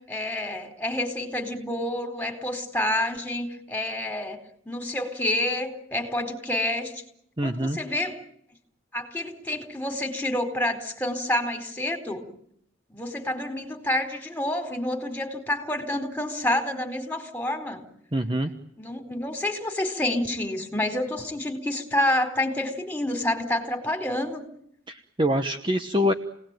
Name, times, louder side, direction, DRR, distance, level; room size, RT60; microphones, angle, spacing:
voice 1, 0.0-4.4 4.7-7.0 7.4-8.2 8.9-12.3 12.9-17.8 18.8-24.5, left 1 dB, 10° left, 5 dB, 4.4 m, -28 dB
voice 2, 7.4-7.8 18.1-18.5 24.9-26.1, equal, 25° right, 6 dB, 1.1 m, -25 dB
29.5 x 19.5 x 9.2 m, 0.72 s
head